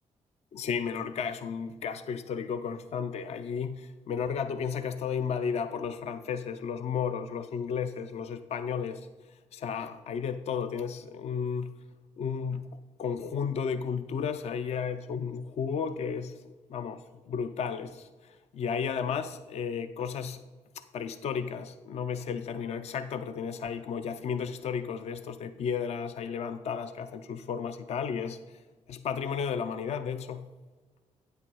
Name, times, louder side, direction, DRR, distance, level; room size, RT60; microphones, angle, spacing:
voice 1, 0.5-9.1 9.5-11.7 12.2-12.6 13.0-16.3 16.7-20.4 20.8-28.4 28.9-30.5, left 6 dB, 60° left, 10 dB, 0.5 m, -33 dB
8.6 x 5.7 x 5.4 m, 1.3 s
cardioid pair, 105°, 12 cm